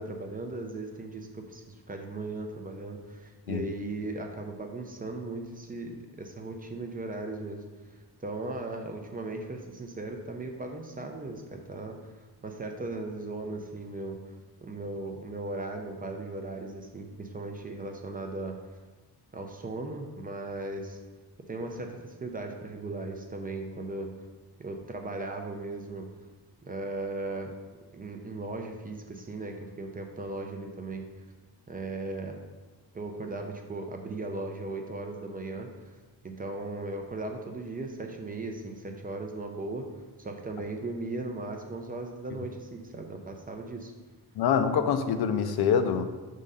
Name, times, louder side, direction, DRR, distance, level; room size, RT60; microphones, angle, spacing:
voice 1, 0.0-7.6 8.2-12.1 12.4-14.2 14.6-18.6 19.3-21.0 21.5-24.1 24.6-26.1 26.6-27.5 27.9-31.0 31.7-32.4 32.9-35.7 36.2-39.9 40.2-43.9, right 2 dB, 25° right, 3 dB, 0.4 m, -37 dB
voice 2, 44.4-46.0, left 7 dB, 70° left, 8 dB, 0.6 m, -25 dB
5.3 x 3.7 x 5.4 m, 1.3 s
wide cardioid pair, 165°, 39 cm